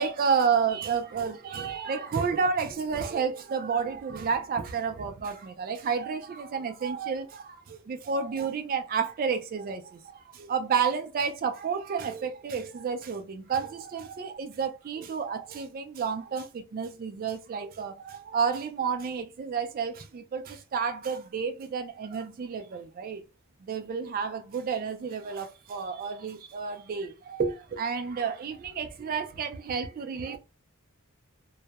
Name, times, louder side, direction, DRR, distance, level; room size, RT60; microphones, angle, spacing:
voice 1, 0.0-23.2 23.6-30.4, right 6 dB, 40° right, 0.3 m, -31 dB
2.2 x 2.0 x 2.7 m
head